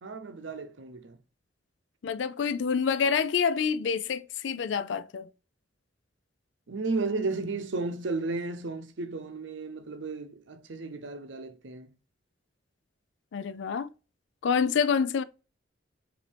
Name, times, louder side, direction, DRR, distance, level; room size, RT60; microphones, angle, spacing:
voice 1, 0.0-1.2 6.7-11.9, right 3 dB, 75° right, 0.7 m, -34 dB
voice 2, 2.0-5.3 13.3-13.9 14.4-15.2, left 6 dB, 75° left, 0.4 m, -27 dB
5.3 x 2.7 x 3.3 m
head